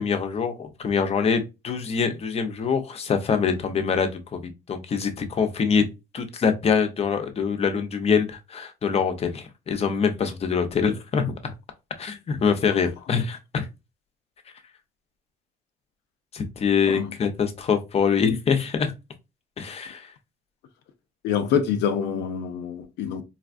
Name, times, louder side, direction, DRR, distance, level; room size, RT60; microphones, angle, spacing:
voice 1, 0.0-5.9 6.1-11.4 12.0-13.7 16.3-18.9 19.6-20.1, left 6 dB, 35° left, 0.7 m, -24 dB
voice 2, 21.2-23.2, left 8 dB, 80° left, 0.6 m, -25 dB
4.0 x 2.3 x 2.5 m
cardioid pair, 110°, 17 cm